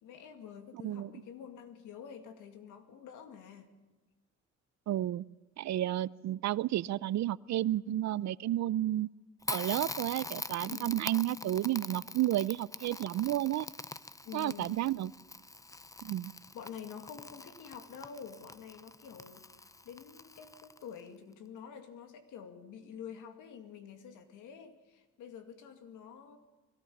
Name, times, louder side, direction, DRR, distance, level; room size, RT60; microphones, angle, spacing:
voice 1, 0.0-3.7 10.7-11.1 14.2-14.8 16.5-26.4, left 7 dB, 90° left, 7 dB, 2.3 m, -48 dB
voice 2, 4.9-5.2 5.6-9.1 9.5-13.7 14.3-15.1 16.0-16.3, right 13 dB, 65° right, 20 dB, 0.6 m, -31 dB
Crackle, 9.4-21.0, left 2 dB, 10° left, 0.6 m, -44 dB
21.5 x 17.5 x 7.2 m, 1.2 s
cardioid pair, 90°, 30 cm